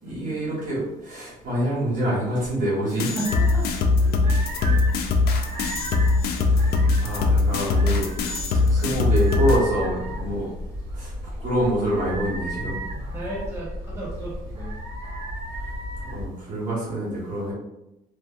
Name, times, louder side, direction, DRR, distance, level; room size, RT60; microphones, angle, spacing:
voice 1, 0.0-3.1 6.4-8.1 8.6-10.5 10.9-11.1 11.4-12.8 16.1-17.5, right 1 dB, 50° right, -8 dB, 1.3 m, -26 dB
sound 1, 3.0-9.6, left 3 dB, 70° left, 0.4 m, -21 dB
voice 2, 3.0-3.6 4.0-4.2 4.6-4.8 13.1-14.7, right 1 dB, 15° right, -6 dB, 1.2 m, -34 dB
sound 2, 3.2-16.3, equal, 35° right, 1.1 m, -34 dB
2.5 x 2.5 x 2.4 m, 0.91 s
cardioid pair, 110°, 17 cm